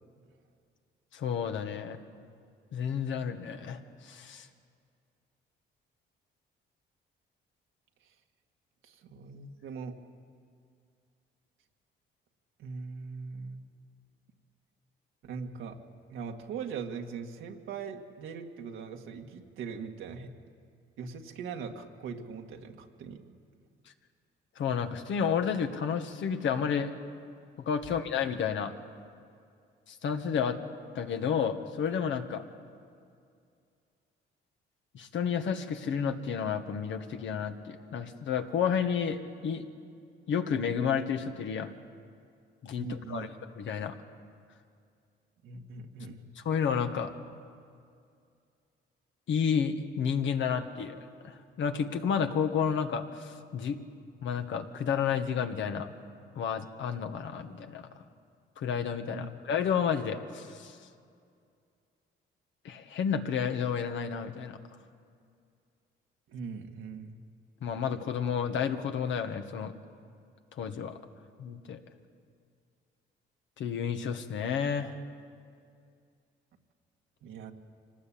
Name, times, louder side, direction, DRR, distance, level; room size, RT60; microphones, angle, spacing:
voice 1, 1.1-2.0 2.7-4.5 24.6-26.9 27.6-28.7 29.9-30.6 30.9-32.4 34.9-39.6 40.3-41.7 42.6-43.3 43.6-43.9 46.4-47.1 49.3-51.0 51.2-53.8 54.2-55.9 56.3-57.8 58.6-60.8 62.6-64.6 67.6-69.7 70.6-70.9 71.4-71.8 73.6-75.0, left 7 dB, 70° left, 6 dB, 1.6 m, -31 dB
voice 2, 8.8-10.0 12.6-13.7 15.2-15.8 16.1-20.3 21.0-23.2 27.9-28.0 42.8-43.3 45.4-46.2 59.1-59.3 66.3-67.2 77.2-77.5, right 5 dB, 85° right, 3 dB, 1.9 m, -41 dB
25.0 x 18.5 x 8.7 m, 2.4 s
cardioid pair, 90°, 20 cm